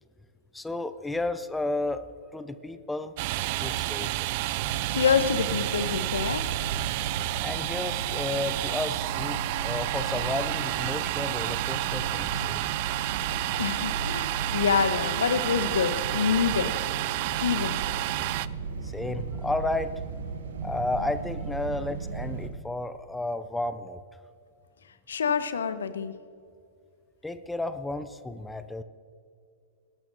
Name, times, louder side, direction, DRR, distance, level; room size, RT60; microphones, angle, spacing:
voice 1, 0.5-2.1 2.3-3.1 3.6-4.1 7.4-12.7 18.8-19.9 20.6-24.0 27.2-28.8, left 2 dB, 5° left, 11 dB, 0.6 m, -32 dB
Domestic sounds home sounds, 3.2-18.5, right 18 dB, 50° right, 0.3 m, -30 dB
sound 1, 4.5-22.5, right 4 dB, 70° right, 1.4 m, -36 dB
voice 2, 4.9-6.8 13.6-16.7 17.4-17.8 25.1-26.1, left 6 dB, 75° left, 12 dB, 0.8 m, -26 dB
20.5 x 12.0 x 2.6 m, 2.3 s
figure-of-eight pair, 105°, 0 cm